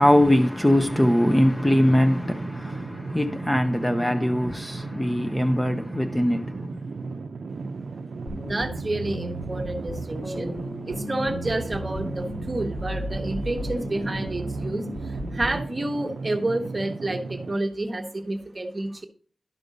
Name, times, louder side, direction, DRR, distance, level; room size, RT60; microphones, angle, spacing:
voice 1, 0.0-6.8, left 1 dB, 10° left, 0.5 m, -21 dB
sound 1, 0.9-17.6, right 4 dB, 85° right, 0.4 m, -36 dB
sound 2, 8.3-15.6, equal, 50° left, 1.9 m, -34 dB
voice 2, 8.3-10.5 10.8-19.1, right 2 dB, 30° right, 1.0 m, -29 dB
12.0 x 5.3 x 3.9 m
wide cardioid pair, 130°, 0 cm